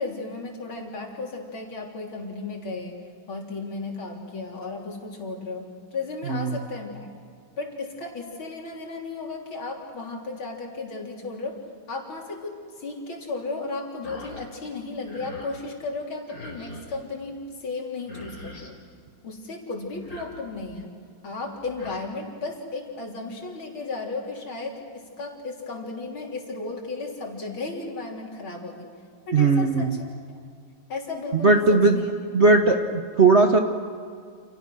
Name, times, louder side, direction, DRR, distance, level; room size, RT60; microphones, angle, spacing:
voice 1, 0.0-3.0 3.3-7.1 7.6-11.6 11.9-18.7 19.2-20.9 21.2-28.9 29.3-30.0 30.9-32.1, left 3 dB, 65° left, 0 dB, 4.2 m, -34 dB
sound 1, 14.0-14.4 14.8-15.6 16.3-17.0 17.7-17.8 18.0-18.7 19.9-20.7 21.5-22.0, left 1 dB, 40° left, 4.0 m, -43 dB
voice 2, 29.3-29.9 31.3-32.0 32.3-32.8 33.2-33.6, right 3 dB, 40° right, 5 dB, 1.1 m, -18 dB
29.5 x 28.0 x 6.3 m, 2.2 s
omnidirectional pair, 2.4 m